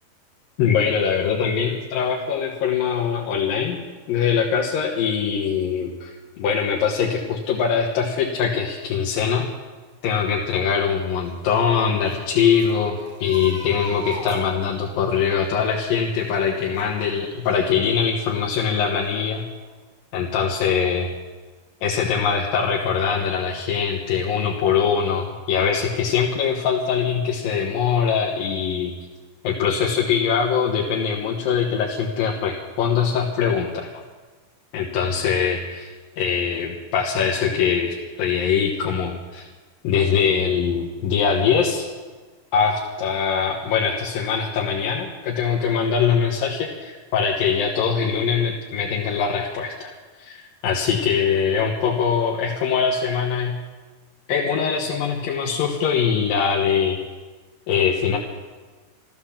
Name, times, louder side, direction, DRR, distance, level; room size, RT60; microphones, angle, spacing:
voice 1, 0.6-3.8 4.1-9.5 10.0-19.4 20.1-21.1 21.8-28.9 29.4-33.9 34.7-39.5 39.8-41.9 42.5-49.9 50.2-53.6 54.3-57.0 57.7-58.2, left 6 dB, 85° left, -3 dB, 3.1 m, -22 dB
sound 1, 11.3-18.1 18.6-19.4 19.7-19.8, right 1 dB, 25° right, 2.5 m, -41 dB
14.0 x 13.5 x 7.2 m, 1.4 s
omnidirectional pair, 4.0 m